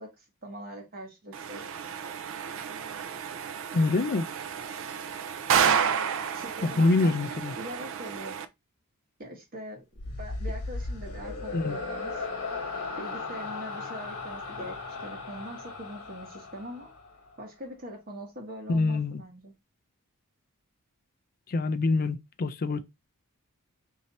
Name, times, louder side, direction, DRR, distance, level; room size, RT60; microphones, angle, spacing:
voice 1, 0.0-1.6 6.3-8.4 9.2-12.2 13.0-16.9 17.4-19.5, equal, 40° right, 1.5 m, -42 dB
sound 1, 1.3-8.4, right 7 dB, 60° right, 0.4 m, -30 dB
voice 2, 3.7-4.3 6.6-7.5 11.5-11.8 18.7-19.2 21.5-22.8, left 3 dB, 40° left, 0.4 m, -25 dB
sound 2, 10.0-17.3, left 3 dB, 70° left, 1.2 m, -36 dB
3.2 x 2.7 x 4.1 m
head